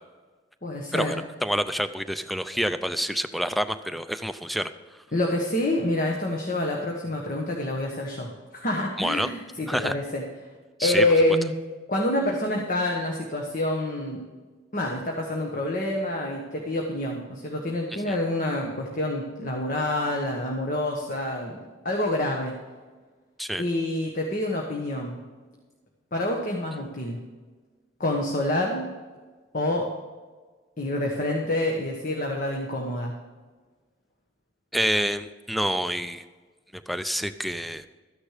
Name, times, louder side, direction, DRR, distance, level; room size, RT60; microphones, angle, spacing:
voice 1, 0.6-1.2 5.1-10.2 10.8-11.6 11.9-14.2 14.7-22.5 23.6-25.2 26.1-27.2 28.0-28.9 29.5-30.0 30.8-33.2, left 1 dB, 45° left, 0 dB, 1.3 m, -27 dB
voice 2, 1.4-4.7 9.0-9.3 9.7-9.9 10.8-11.1 23.4-23.6 34.7-36.2 36.7-37.9, equal, ahead, 11 dB, 0.4 m, -27 dB
13.5 x 9.9 x 5.0 m, 1.4 s
head